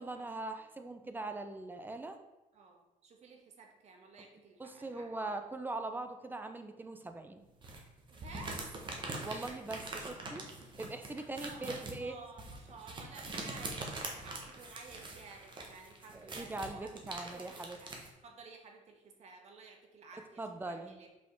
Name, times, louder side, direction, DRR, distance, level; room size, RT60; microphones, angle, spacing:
voice 1, 0.0-2.2 4.6-7.4 9.2-10.5 10.8-12.1 16.1-17.8 20.4-21.0, right 2 dB, 15° right, 7 dB, 0.7 m, -41 dB
voice 2, 2.5-5.3 8.1-8.6 11.1-16.9 17.3-21.1, right 4 dB, 55° right, 3 dB, 1.4 m, -53 dB
sound 1, 7.6-18.1, right 2 dB, 35° right, 1.4 m, -43 dB
5.7 x 5.1 x 4.6 m, 1.0 s
cardioid pair, 125°, 14 cm